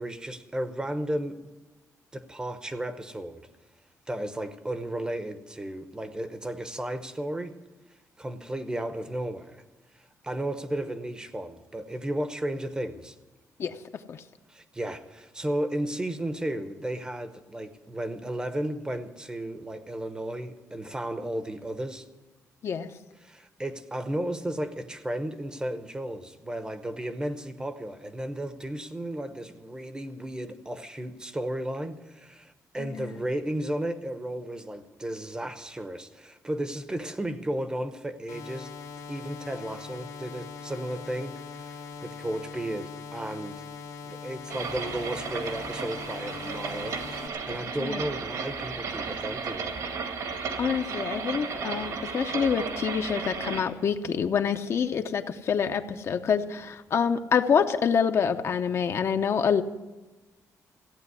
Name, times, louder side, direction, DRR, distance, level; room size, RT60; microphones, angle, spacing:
voice 1, 0.0-1.4 2.1-3.5 4.1-7.6 8.2-9.6 9.9-13.2 14.5-22.1 23.2-38.7 39.1-43.6 44.0-49.8, right 1 dB, 15° right, 0.8 m, -34 dB
voice 2, 32.8-33.1 47.8-48.0 50.6-59.6, left 7 dB, 45° left, 0.7 m, -26 dB
sound 1, 38.3-47.3, left 5 dB, 85° left, 2.0 m, -41 dB
sound 2, 44.5-53.6, right 5 dB, 70° right, 2.0 m, -34 dB
15.0 x 8.7 x 9.7 m
cardioid pair, 165°, 6 cm